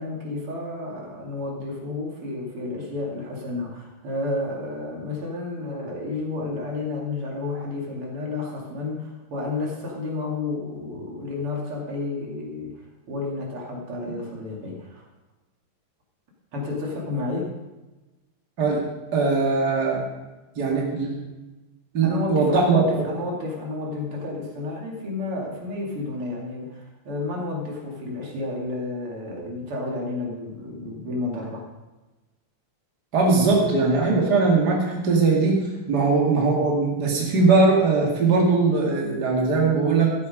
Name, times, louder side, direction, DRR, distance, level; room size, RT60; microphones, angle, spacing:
voice 1, 0.0-15.0 16.5-17.5 22.0-31.7, left 2 dB, 85° right, -2 dB, 3.4 m, -31 dB
voice 2, 19.1-20.0 20.6-21.1 21.9-22.9 33.1-40.1, right 3 dB, 50° right, -2 dB, 2.9 m, -20 dB
13.5 x 9.5 x 5.3 m, 1.1 s
omnidirectional pair, 2.4 m